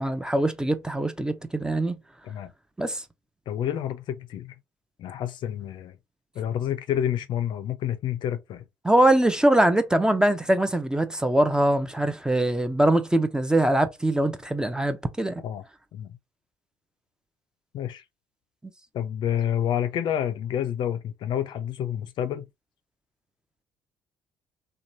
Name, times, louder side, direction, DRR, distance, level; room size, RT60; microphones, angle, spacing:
voice 1, 0.0-1.9 2.8-3.0 8.8-15.4, right 1 dB, 10° right, 0.5 m, -22 dB
voice 2, 3.5-4.5 5.0-6.0 6.4-8.6 15.4-15.6 15.9-16.2 17.7-18.0 18.9-22.5, left 10 dB, 60° left, 0.5 m, -29 dB
2.9 x 2.2 x 2.6 m
hypercardioid pair, 55°, 9 cm